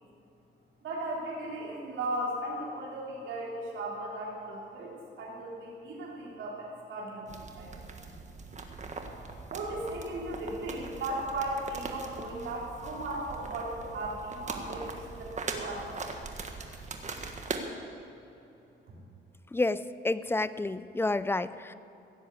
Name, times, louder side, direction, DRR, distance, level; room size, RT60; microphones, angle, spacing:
voice 1, 0.8-7.8 9.5-16.0 18.9-19.0, right 1 dB, 75° right, -4 dB, 3.7 m, -36 dB
sound 1, 7.3-17.6, right 4 dB, 35° right, 1.5 m, -41 dB
voice 2, 19.5-21.7, left 2 dB, 10° left, 15 dB, 0.5 m, -30 dB
16.5 x 7.6 x 8.6 m, 2.9 s
cardioid pair, 90°, 20 cm